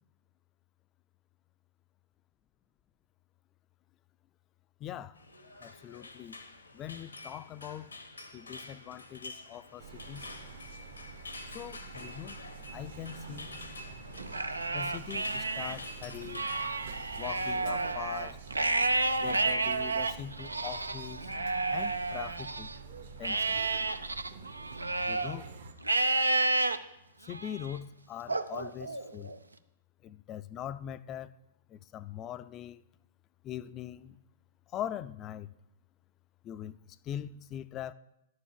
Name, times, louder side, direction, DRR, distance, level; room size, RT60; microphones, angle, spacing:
voice 1, 4.8-5.2 5.6-6.4 6.7-7.9 8.3-10.3 11.5-12.4 12.7-13.6 14.7-16.5 17.2-18.4 19.2-21.2 21.7-22.7 23.2-23.6 25.1-25.5 27.2-29.4 30.0-31.3 31.7-32.8 33.4-34.2 34.7-35.5 36.4-37.9, left 11 dB, 30° left, 0.4 m, -42 dB
sound 1, 5.1-16.7, left 2 dB, 85° left, 1.4 m, -47 dB
sound 2, 9.8-25.7, right 5 dB, 70° right, 1.5 m, -47 dB
Livestock farm animals working animals, 14.2-15.8 16.2-22.8 23.2-25.4 25.8-26.8 27.3-27.7 28.3-29.4, right 2 dB, 90° right, 0.5 m, -31 dB
11.0 x 4.8 x 7.3 m
figure-of-eight pair, 110°, 0 cm